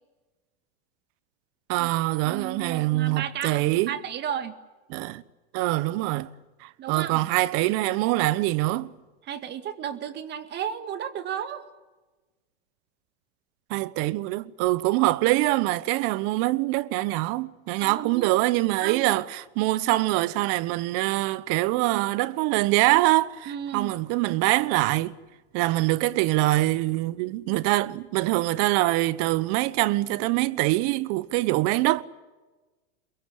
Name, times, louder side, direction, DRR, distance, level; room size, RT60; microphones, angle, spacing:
voice 1, 1.7-3.9 4.9-5.2 5.5-6.3 6.6-8.9 13.7-25.1 25.5-32.0, right 18 dB, 50° right, 1.1 m, -24 dB
voice 2, 2.2-4.6 6.8-7.2 9.2-11.6 17.8-18.3 18.8-19.1 23.5-23.9, right 9 dB, 30° right, 2.0 m, -33 dB
23.0 x 22.5 x 8.3 m
hypercardioid pair, 125°, 32 cm